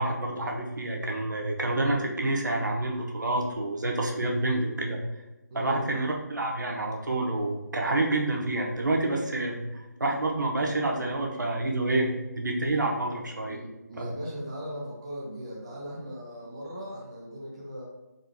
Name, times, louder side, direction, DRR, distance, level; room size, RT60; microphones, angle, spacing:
voice 1, 0.0-5.0 5.5-13.6 13.9-14.1, right 2 dB, 80° right, 0 dB, 0.8 m, -28 dB
voice 2, 5.5-6.0 13.5-17.9, equal, 20° right, -4 dB, 0.4 m, -38 dB
3.7 x 2.2 x 3.4 m, 1.1 s
figure-of-eight pair, 165°, 10 cm